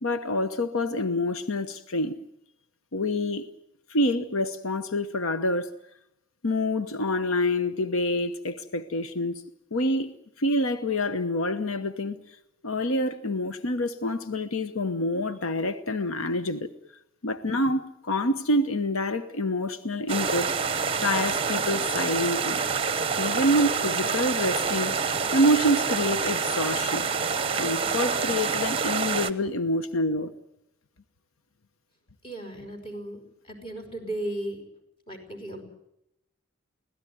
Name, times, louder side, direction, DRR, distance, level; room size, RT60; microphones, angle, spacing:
voice 1, 0.0-2.1 2.9-3.5 3.9-5.7 6.4-9.4 9.7-10.1 10.4-12.4 12.6-16.7 17.2-20.5 21.0-22.6 23.2-24.9 25.3-27.1 27.5-30.3, left 1 dB, 80° left, 1.0 m, -27 dB
sound 1, 20.1-29.3, right 5 dB, 25° right, 0.9 m, -27 dB
voice 2, 32.2-34.6 35.1-35.6, right 1 dB, 25° left, 5.5 m, -35 dB
24.0 x 17.0 x 9.5 m
head